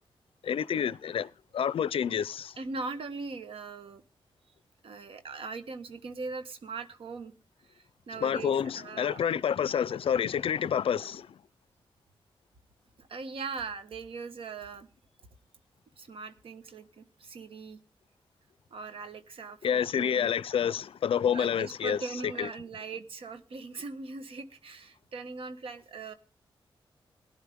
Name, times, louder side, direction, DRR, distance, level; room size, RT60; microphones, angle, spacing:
voice 1, 0.4-2.5 8.2-11.3 19.6-22.0 22.4-22.5, left 8 dB, 80° left, 0.5 m, -28 dB
voice 2, 2.6-4.0 4.8-7.3 7.6-9.2 13.0-14.9 16.0-17.8 18.7-20.3 21.3-26.1, right 4 dB, 80° right, 1.4 m, -40 dB
17.5 x 11.0 x 3.6 m
cardioid pair, 80°, 9 cm